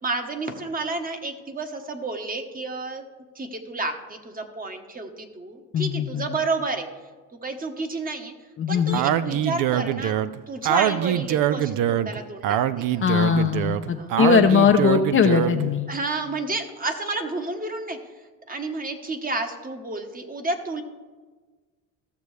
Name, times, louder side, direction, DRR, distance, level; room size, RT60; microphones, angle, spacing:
voice 1, 0.0-3.0 3.3-6.9 7.4-8.3 8.7-10.2 10.5-12.6 12.9-13.2 14.0-14.1 15.9-18.0 18.5-20.8, right 3 dB, 20° right, 5 dB, 1.1 m, -30 dB
voice 2, 5.7-6.4 8.6-9.0 13.0-15.9, left 6 dB, 35° left, 5 dB, 0.6 m, -20 dB
Speech, 8.9-15.7, right 10 dB, 60° right, 0.5 m, -24 dB
15.0 x 6.8 x 3.2 m, 1.4 s
cardioid pair, 100°, 38 cm